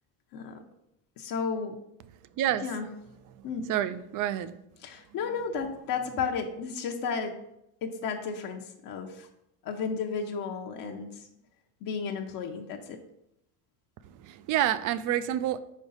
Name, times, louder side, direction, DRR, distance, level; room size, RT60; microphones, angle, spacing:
voice 1, 1.2-1.8 2.6-2.9 3.4-3.6 4.8-7.3 7.8-9.3 9.6-11.2 11.8-13.0, left 5 dB, 50° left, 3 dB, 0.8 m, -33 dB
voice 2, 3.7-4.6 14.1-15.6, right 12 dB, 50° right, 15 dB, 0.5 m, -28 dB
5.3 x 4.8 x 3.9 m, 0.83 s
cardioid pair, 125°, 43 cm